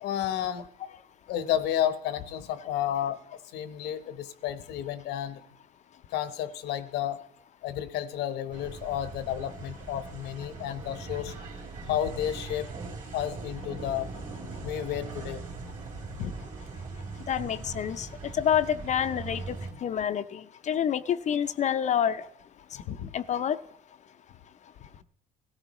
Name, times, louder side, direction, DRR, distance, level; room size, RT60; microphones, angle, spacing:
voice 1, 0.0-0.7 1.3-5.4 6.1-7.2 7.6-11.3 11.9-12.7 13.1-14.1 14.6-15.4 16.1-16.3 22.9-23.1, left 11 dB, 80° left, 12 dB, 0.9 m, -31 dB
sound 1, 8.5-19.7, right 4 dB, 50° right, 3.3 m, -40 dB
voice 2, 17.3-18.1 18.3-19.6 19.8-20.4 20.7-22.2 23.1-23.6, left 9 dB, 45° left, 12 dB, 0.5 m, -27 dB
17.0 x 14.5 x 3.0 m, 0.72 s
cardioid pair, 110°, 17 cm